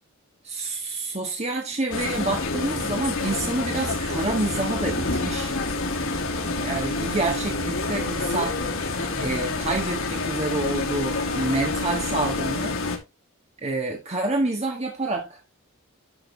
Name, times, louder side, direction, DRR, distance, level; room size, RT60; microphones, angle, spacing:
voice 1, 0.4-5.6 6.6-8.6 9.2-12.8 13.6-15.5, right 2 dB, 30° right, 2 dB, 1.5 m, -28 dB
sound 1, 1.9-13.0, left 3 dB, 75° left, 2.7 m, -28 dB
11.0 x 6.3 x 3.5 m, 0.23 s
head